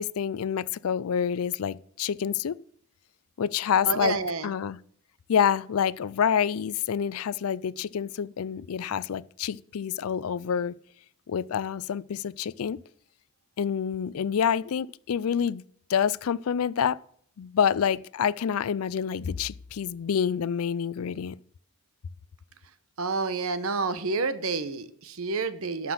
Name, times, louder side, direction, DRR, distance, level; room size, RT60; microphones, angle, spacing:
voice 1, 0.0-2.6 3.4-4.2 4.4-4.8 5.3-10.7 11.3-12.8 13.6-15.6 15.9-17.0 17.4-21.4, left 7 dB, 75° left, 0.4 m, -27 dB
voice 2, 3.8-4.5 23.0-25.9, right 4 dB, 70° right, 1.0 m, -29 dB
11.5 x 6.0 x 7.6 m
head